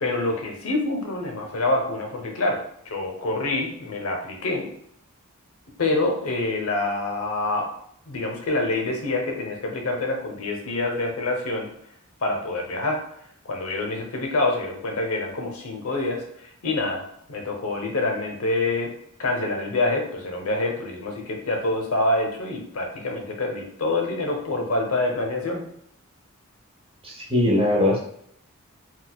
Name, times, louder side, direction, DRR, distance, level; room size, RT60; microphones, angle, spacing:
voice 1, 0.0-2.6 2.9-4.7 5.8-7.7 8.1-11.7 12.2-13.0 13.4-16.2 16.6-18.9 19.2-25.7, left 2 dB, 75° left, 1 dB, 0.7 m, -26 dB
voice 2, 27.0-28.0, left 1 dB, 25° right, 0 dB, 0.7 m, -21 dB
4.0 x 2.3 x 2.2 m, 0.70 s
head